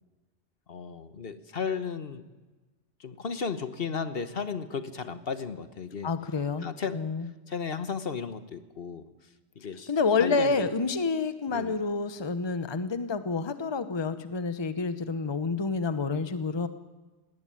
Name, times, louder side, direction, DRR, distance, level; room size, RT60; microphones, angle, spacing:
voice 1, 0.7-2.3 3.0-6.1 6.6-7.0 7.5-9.0 9.6-9.9 10.2-10.7 11.5-11.8, left 6 dB, 55° left, 11 dB, 1.3 m, -34 dB
voice 2, 6.0-6.7 6.9-7.3 9.9-16.7, left 4 dB, 25° left, 11 dB, 0.9 m, -28 dB
18.5 x 17.0 x 10.0 m, 1.2 s
omnidirectional pair, 1.2 m